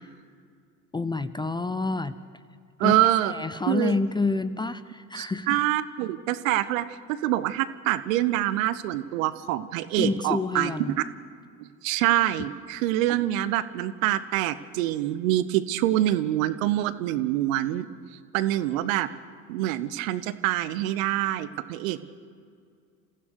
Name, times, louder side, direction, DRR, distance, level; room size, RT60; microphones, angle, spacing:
voice 1, 0.9-2.1 2.8-2.9 3.3-5.6 10.0-11.0, left 3 dB, 10° left, 14 dB, 0.6 m, -28 dB
voice 2, 2.8-3.3 3.7-4.0 5.1-6.8 7.2-10.7 11.0-11.1 11.6-17.9 18.3-19.1 19.5-22.0, right 14 dB, 60° right, 14 dB, 1.1 m, -25 dB
29.5 x 15.5 x 6.4 m, 2.2 s
figure-of-eight pair, 65°, 45 cm